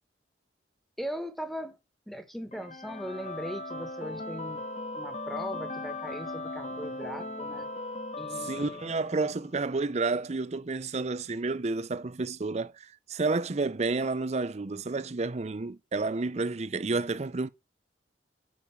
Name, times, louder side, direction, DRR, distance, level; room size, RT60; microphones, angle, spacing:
voice 1, 1.0-1.8 2.1-4.6 4.9-7.7 8.2-8.8, equal, ahead, 1.0 m, -39 dB
sound 1, 2.5-9.5, left 2 dB, 35° left, 0.9 m, -38 dB
voice 2, 8.4-17.5, right 3 dB, 35° right, 0.5 m, -30 dB
8.9 x 5.1 x 5.7 m
head